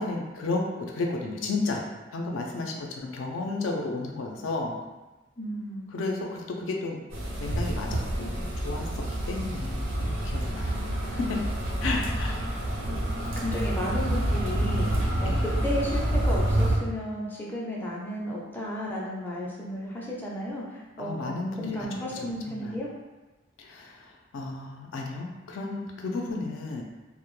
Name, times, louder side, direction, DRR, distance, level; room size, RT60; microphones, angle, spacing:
voice 1, 0.0-1.9 2.1-4.8 5.9-7.0 7.4-10.8 11.1-11.4 11.8-12.5 15.2-15.5 21.0-22.8 23.6-24.1 24.3-26.8, left 3 dB, 75° left, 0 dB, 0.4 m, -33 dB
voice 2, 5.4-5.9 13.4-14.9 15.2-21.3 21.6-22.9 26.4-26.5, equal, 10° left, -5 dB, 0.4 m, -33 dB
sound 1, 7.1-16.8, right 1 dB, 90° right, 0.5 m, -28 dB
2.1 x 2.0 x 3.0 m, 1.1 s
head